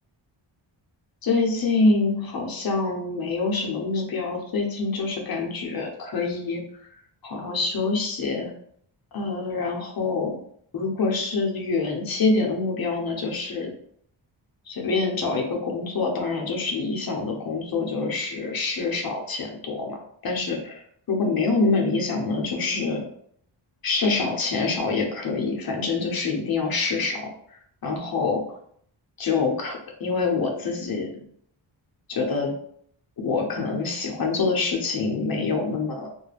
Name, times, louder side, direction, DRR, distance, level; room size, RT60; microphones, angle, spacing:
voice 1, 1.2-6.6 7.2-8.5 9.1-10.4 10.7-13.7 14.7-20.8 21.1-23.0 23.8-27.3 27.8-28.6 29.2-31.2 32.1-32.5 33.2-36.1, left 3 dB, 50° left, 1 dB, 0.7 m, -26 dB
2.4 x 2.1 x 3.2 m, 0.65 s
wide cardioid pair, 110°, 48 cm